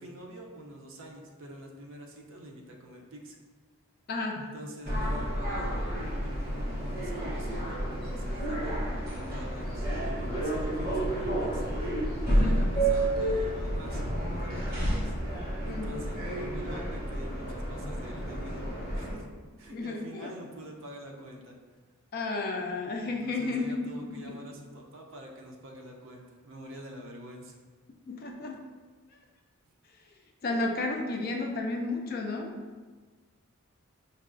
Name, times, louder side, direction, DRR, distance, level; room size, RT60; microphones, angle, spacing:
voice 1, 0.0-3.4 4.3-11.7 12.3-19.3 19.6-21.5 23.1-27.6, right 1 dB, 65° right, 1 dB, 0.5 m, -45 dB
voice 2, 4.1-4.4 12.3-12.6 15.6-15.9 19.7-20.3 22.1-24.3 28.1-28.6 30.4-32.5, left 3 dB, 45° left, 1 dB, 0.4 m, -32 dB
sound 1, 4.8-19.1, right 1 dB, 45° right, 1.0 m, -30 dB
5.2 x 2.3 x 2.4 m, 1.4 s
head